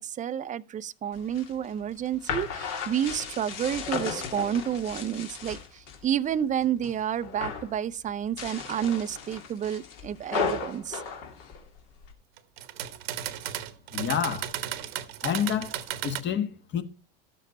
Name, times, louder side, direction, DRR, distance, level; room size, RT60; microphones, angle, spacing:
voice 1, 0.0-11.0, right 9 dB, 25° right, 0.5 m, -30 dB
sound 1, 1.1-6.0 6.4-7.0 7.2-7.7 8.2-12.1, left 6 dB, 55° left, 2.2 m, -35 dB
sound 2, 12.4-16.2, right 11 dB, 75° right, 1.1 m, -35 dB
voice 2, 13.9-14.5 15.2-15.7 16.0-16.8, left 8 dB, 35° left, 1.4 m, -28 dB
12.5 x 7.3 x 4.2 m
hypercardioid pair, 90°, 30 cm